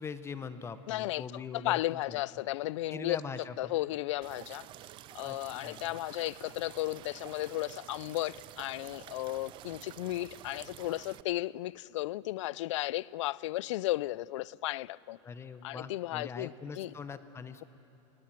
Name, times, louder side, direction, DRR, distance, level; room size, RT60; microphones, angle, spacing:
voice 1, 0.0-2.2 2.9-3.7 5.2-5.9 15.2-17.6, left 5 dB, 15° left, 0.7 m, -42 dB
voice 2, 0.9-3.2 3.6-4.7 5.1-15.2 15.6-16.9, left 17 dB, 80° left, 0.4 m, -34 dB
sound 1, 4.2-11.2, right 14 dB, 30° right, 0.4 m, -50 dB
20.0 x 18.0 x 7.5 m
supercardioid pair, 145°, 15 cm